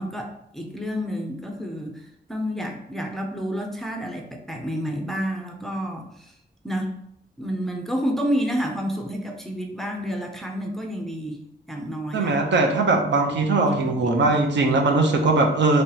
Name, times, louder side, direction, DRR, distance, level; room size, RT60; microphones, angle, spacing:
voice 1, 0.0-6.3 6.6-7.0 7.4-12.4 13.6-14.3, equal, ahead, 1 dB, 0.4 m, -30 dB
voice 2, 12.1-15.8, right 3 dB, 75° right, 3 dB, 0.6 m, -20 dB
3.1 x 2.9 x 3.8 m, 0.76 s
wide cardioid pair, 170°, 18 cm